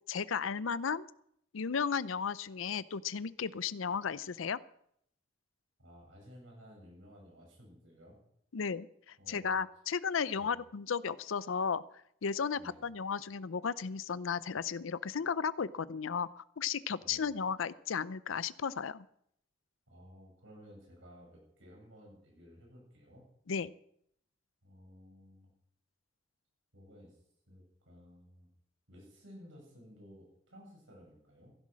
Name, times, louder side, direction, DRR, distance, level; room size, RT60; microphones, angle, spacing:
voice 1, 0.1-1.1 1.5-4.6 8.5-11.8 12.2-19.0 23.5-23.7, left 6 dB, 85° left, 18 dB, 0.6 m, -34 dB
voice 2, 5.8-8.2 9.2-9.6 10.3-10.6 12.5-12.8 17.0-17.3 19.9-23.3 24.6-25.5 26.7-27.2 27.5-28.5 28.9-31.5, equal, 75° right, 0 dB, 7.4 m, -55 dB
15.5 x 11.5 x 6.2 m, 0.71 s
head